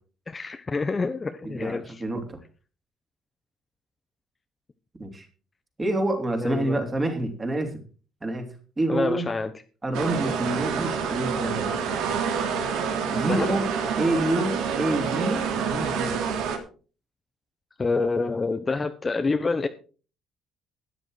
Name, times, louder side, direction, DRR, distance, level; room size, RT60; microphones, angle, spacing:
voice 1, 0.3-2.0 6.4-6.8 8.9-9.5 13.1-13.6 17.8-19.7, left 3 dB, 20° left, 8 dB, 0.8 m, -27 dB
voice 2, 1.4-2.4 5.0-5.3 5.8-7.8 8.2-9.3 9.8-11.8 13.1-13.6 14.0-16.1, right 1 dB, 20° right, 5 dB, 2.9 m, -28 dB
sound 1, 9.9-16.6, right 6 dB, 85° right, 3.0 m, -27 dB
13.0 x 10.0 x 4.8 m, 0.38 s
cardioid pair, 145°, 0 cm